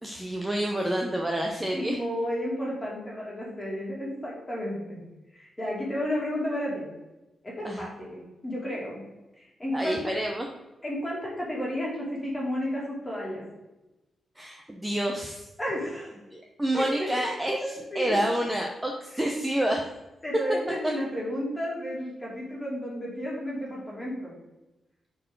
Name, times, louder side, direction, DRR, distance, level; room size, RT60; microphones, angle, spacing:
voice 1, 0.0-2.0 7.6-7.8 9.7-10.5 14.4-15.5 16.6-19.9, right 1 dB, 10° right, 0 dB, 0.7 m, -28 dB
voice 2, 1.7-5.0 5.3-6.9 7.4-9.0 9.4-10.0 10.8-13.4 15.6-16.1 16.7-17.2 17.6-18.2 19.1-19.3 20.2-24.3, equal, 15° left, -4 dB, 2.5 m, -32 dB
11.0 x 4.5 x 3.9 m, 1.0 s
wide cardioid pair, 175°, 0 cm